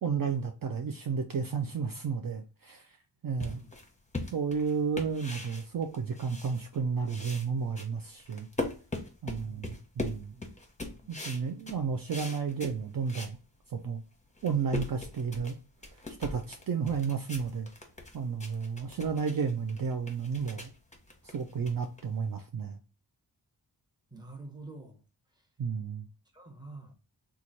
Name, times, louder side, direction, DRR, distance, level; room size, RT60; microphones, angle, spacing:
voice 1, 0.0-3.0 3.2-3.6 4.3-8.5 9.2-10.3 11.1-13.4 13.7-14.0 14.4-15.5 16.2-17.7 18.1-20.7 21.2-22.8 25.6-26.1, right 6 dB, 55° right, 0.5 m, -32 dB
sound 1, 3.4-6.8 7.1-13.4 13.8-13.9 14.3-22.4, left 2 dB, 15° left, 0.9 m, -41 dB
voice 2, 9.4-9.8 10.3-10.5 10.9-11.1 24.1-25.0 26.3-26.9, right 3 dB, 10° right, 1.0 m, -47 dB
3.0 x 2.4 x 3.9 m
wide cardioid pair, 55°, 42 cm